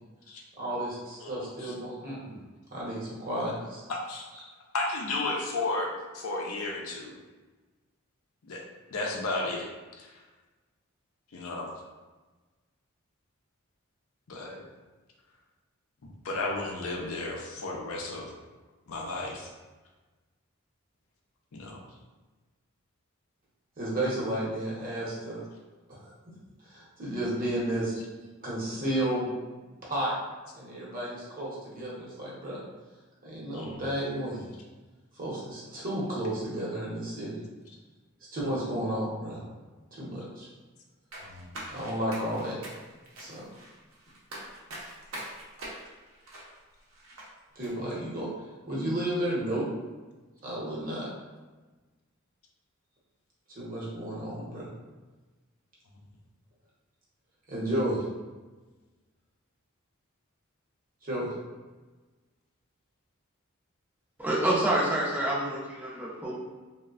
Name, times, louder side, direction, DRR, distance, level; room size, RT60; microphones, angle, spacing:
voice 1, 0.6-2.4 2.7-3.8 23.8-25.4 25.9-26.3 26.7-27.9 28.4-29.3 29.8-30.1 30.5-32.6 33.2-34.4 35.2-37.4 38.3-39.4 40.0-40.5 41.7-42.6 43.2-43.5 47.6-48.3 48.7-49.7 50.4-51.1 53.5-54.7 57.5-58.0 61.0-61.3, right 1 dB, 40° right, -6 dB, 0.8 m, -32 dB
voice 2, 1.2-1.7 3.9-4.3 4.7-7.2 8.4-8.6 8.9-9.7 10.0-10.1 11.3-11.8 14.3-14.6 16.0-18.4 18.9-19.5 21.5-21.8 33.5-33.8 41.2-41.5, left 2 dB, 80° left, 0 dB, 0.5 m, -33 dB
sound 1, 41.1-47.3 47.6-47.7, right 1 dB, 70° right, 0.6 m, -43 dB
voice 3, 64.2-66.4, right 1 dB, 10° right, -6 dB, 0.5 m, -27 dB
3.0 x 2.1 x 2.4 m, 1.3 s
head